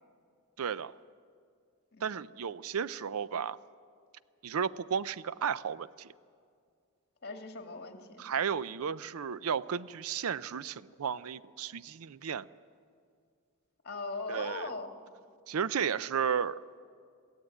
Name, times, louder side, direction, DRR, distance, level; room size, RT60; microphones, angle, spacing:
voice 1, 0.6-0.9 2.0-3.6 4.4-6.1 8.2-12.5 14.3-14.7 15.5-16.8, right 7 dB, 75° right, 17 dB, 0.5 m, -33 dB
voice 2, 7.2-8.3 13.8-15.0, left 3 dB, 45° left, 5 dB, 1.9 m, -40 dB
22.5 x 15.5 x 9.1 m, 2.2 s
head